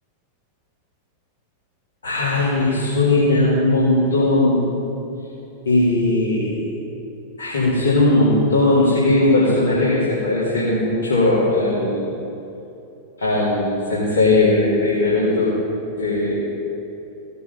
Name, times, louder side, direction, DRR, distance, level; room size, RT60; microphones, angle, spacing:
voice 1, 2.0-4.6 5.6-6.7 7.4-12.2 13.2-15.5 15.9-16.5, left 2 dB, 75° left, -11 dB, 2.9 m, -18 dB
16.0 x 6.8 x 5.5 m, 2.9 s
figure-of-eight pair, 90°, 0 cm